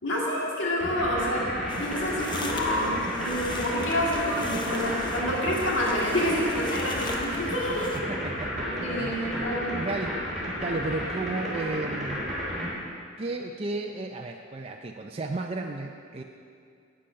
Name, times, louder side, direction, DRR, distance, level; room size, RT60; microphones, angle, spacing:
voice 1, 0.0-1.5 1.8-7.9 8.7-9.8, equal, 75° left, -4 dB, 2.1 m, -28 dB
sound 1, 0.8-12.7, equal, ahead, 3.4 m, -32 dB
sound 2, 1.7-8.0, left 2 dB, 25° left, 0.8 m, -39 dB
voice 2, 8.1-10.2 10.6-12.3 13.2-16.2, right 3 dB, 30° right, 2 dB, 0.4 m, -34 dB
11.5 x 8.8 x 5.7 m, 2.3 s
head